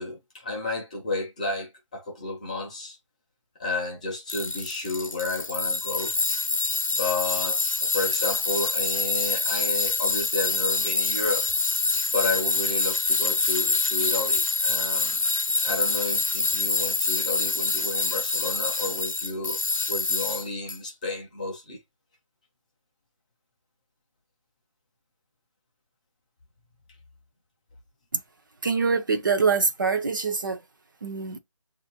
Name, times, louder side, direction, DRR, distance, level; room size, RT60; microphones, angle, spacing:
voice 1, 0.0-3.0 3.6-6.1 6.9-11.5 12.1-15.3 15.6-19.6 19.9-21.8, left 3 dB, 15° left, 0.6 m, -31 dB
Tools, 4.3-20.8, left 3 dB, 90° left, 0.7 m, -26 dB
voice 2, 28.6-30.6 31.0-31.4, right 5 dB, 40° right, 0.6 m, -24 dB
7.0 x 2.6 x 2.9 m
figure-of-eight pair, 160°, 17 cm